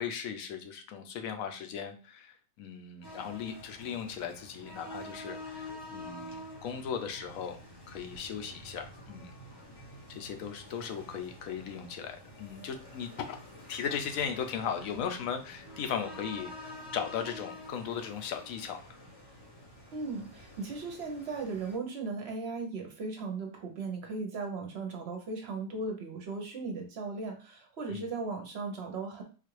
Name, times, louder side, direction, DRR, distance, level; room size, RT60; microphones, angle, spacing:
voice 1, 0.0-7.6 7.9-9.3 10.1-13.4 13.7-18.8 27.9-28.1, left 7 dB, 80° left, 7 dB, 1.0 m, -37 dB
sound 1, 3.0-21.8, left 1 dB, 25° left, 0.6 m, -48 dB
voice 2, 19.9-29.2, right 3 dB, 60° right, 3 dB, 0.8 m, -37 dB
3.8 x 2.4 x 3.0 m, 0.37 s
omnidirectional pair, 1.4 m